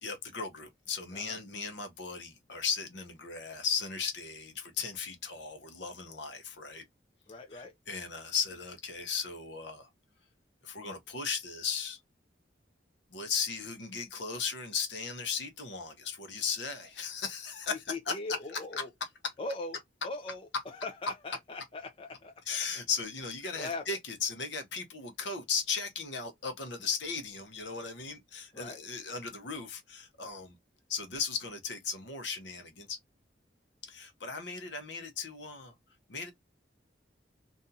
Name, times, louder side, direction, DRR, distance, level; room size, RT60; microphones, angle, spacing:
voice 1, 0.0-6.8 7.5-9.9 10.6-12.0 13.1-18.9 19.2-19.3 20.5-20.6 22.5-30.6 30.9-33.0 33.8-35.7 36.1-36.3, left 5 dB, 70° left, 0.8 m, -36 dB
voice 2, 7.3-7.7 17.9-18.9 19.4-19.8 20.0-20.5 20.7-22.3 23.6-23.8 28.5-28.8, left 2 dB, 30° left, 0.4 m, -40 dB
2.6 x 2.3 x 2.6 m
head